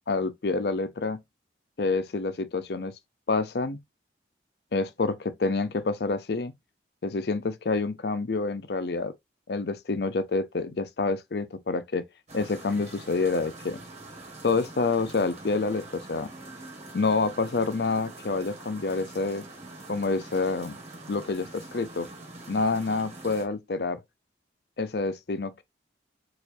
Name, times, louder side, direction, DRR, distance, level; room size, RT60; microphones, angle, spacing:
voice 1, 0.1-1.2 1.8-2.9 3.3-3.8 4.7-6.5 7.0-9.1 9.5-12.0 12.3-13.8 14.4-16.3 16.9-19.4 19.9-20.8 21.1-22.1 22.5-24.0 24.8-25.6, left 3 dB, 60° left, 0.6 m, -28 dB
sound 1, 12.3-23.5, right 2 dB, 35° right, 1.7 m, -44 dB
4.5 x 4.3 x 2.6 m
head